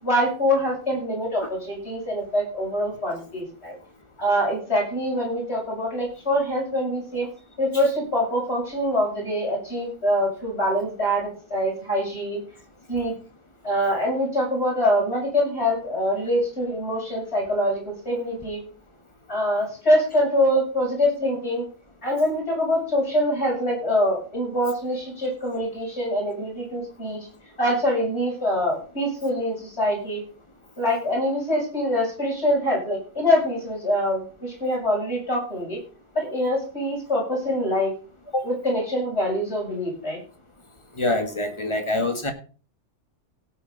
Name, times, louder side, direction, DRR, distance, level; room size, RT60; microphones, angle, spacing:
voice 1, 0.0-3.7 4.2-7.3 7.6-12.4 12.9-13.1 13.6-18.6 19.3-21.6 22.0-27.3 27.6-30.2 30.8-35.8 36.1-37.9 38.4-40.2, equal, 55° left, -3 dB, 7.9 m, -24 dB
voice 2, 41.0-42.3, left 2 dB, 25° left, 6 dB, 1.8 m, -25 dB
17.0 x 8.5 x 4.1 m, 0.39 s
omnidirectional pair, 1.3 m